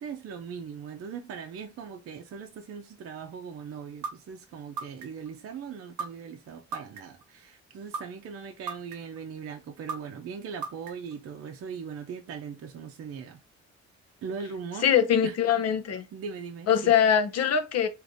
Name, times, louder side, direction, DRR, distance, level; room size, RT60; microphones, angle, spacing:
voice 1, 0.0-13.4 14.2-14.9 15.2-15.4 16.1-16.9, right 6 dB, 50° right, 0.6 m, -39 dB
sound 1, 4.0-4.1 4.8-5.3 6.0-6.1 6.7-7.2 7.9-8.0 8.7-9.2 9.9-10.0 10.6-11.1, right 4 dB, 80° right, 0.8 m, -33 dB
voice 2, 14.8-16.0 16.7-17.9, left 8 dB, 60° left, 0.6 m, -22 dB
4.8 x 2.6 x 2.6 m
cardioid pair, 145°, 29 cm